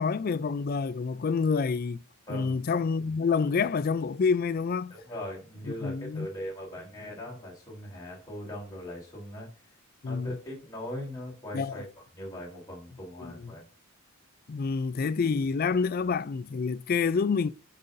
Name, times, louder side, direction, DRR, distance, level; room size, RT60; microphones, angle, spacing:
voice 1, 0.0-2.0 2.3-4.9 5.7-6.3 10.0-10.3 11.5-11.8 13.4-13.5 14.5-17.5, left 5 dB, 40° left, 0.3 m, -28 dB
voice 2, 2.3-2.6 4.9-9.5 10.0-11.8 12.1-13.6, equal, 15° left, 3.5 m, -40 dB
12.0 x 5.4 x 2.6 m
head